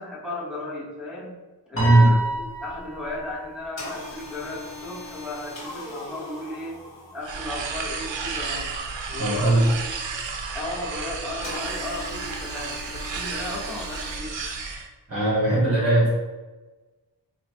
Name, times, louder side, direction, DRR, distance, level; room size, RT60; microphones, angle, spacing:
voice 1, 0.0-1.4 1.7-2.2 2.6-6.8 7.1-8.7 9.1-9.8 10.5-14.4, left 1 dB, ahead, -8 dB, 1.1 m, -35 dB
voice 2, 1.7-2.1 9.2-9.7 15.1-16.1, right 2 dB, 35° right, -6 dB, 1.2 m, -19 dB
Piano, 1.8-4.3, right 2 dB, 30° left, 1.0 m, -30 dB
sound 1, 3.8-7.7 11.4-14.2, left 2 dB, 80° left, 1.0 m, -40 dB
sound 2, 7.2-14.9, right 4 dB, 80° right, 0.5 m, -32 dB
3.8 x 2.4 x 2.9 m, 1.2 s
wide cardioid pair, 65°, 44 cm